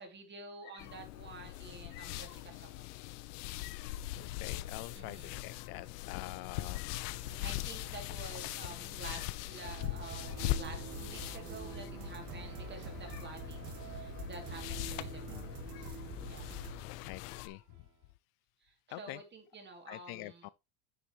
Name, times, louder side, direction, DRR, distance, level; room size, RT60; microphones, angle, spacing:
voice 1, 0.0-2.9 4.9-5.4 7.1-16.0 16.2-16.6 18.6-20.5, right 3 dB, 25° right, 2.8 m, -50 dB
sound 1, 0.8-17.5, left 16 dB, 85° left, 0.8 m, -41 dB
voice 2, 3.6-7.1 13.1-13.3 15.3-15.9 17.1-17.6 18.9-19.2 19.9-20.5, left 20 dB, 55° left, 0.5 m, -47 dB
sound 2, 7.2-14.9, right 10 dB, 75° right, 2.0 m, -58 dB
sound 3, 9.6-17.7, right 4 dB, 40° right, 2.2 m, -45 dB
9.9 x 7.2 x 3.1 m
cardioid pair, 135°, 46 cm